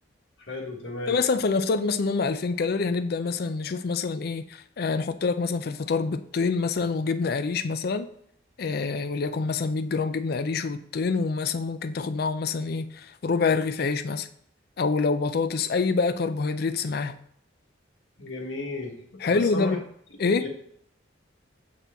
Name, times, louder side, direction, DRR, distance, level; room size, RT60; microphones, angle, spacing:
voice 1, 0.5-1.1 18.2-18.9 19.2-19.7 20.2-20.5, left 2 dB, 70° left, 1.4 m, -33 dB
voice 2, 1.1-8.1 8.6-14.3 14.8-17.2 19.2-19.8 20.2-20.5, left 4 dB, 50° left, 0.4 m, -26 dB
7.5 x 4.2 x 3.4 m
head